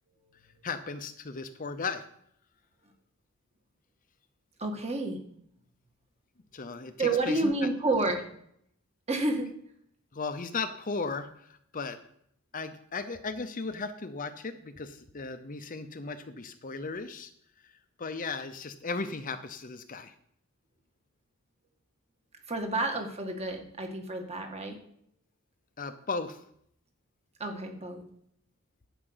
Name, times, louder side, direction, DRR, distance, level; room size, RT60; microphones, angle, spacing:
voice 1, 0.6-2.0 6.5-7.5 10.1-12.0 12.5-17.3 17.6-17.7 18.0-20.1 25.8-26.4, left 4 dB, 40° left, 9 dB, 0.7 m, -36 dB
voice 2, 4.6-5.2 7.0-8.3 9.1-9.5 22.5-24.8 27.4-28.0, right 2 dB, 30° right, 3 dB, 1.7 m, -30 dB
11.5 x 5.1 x 8.0 m, 0.69 s
head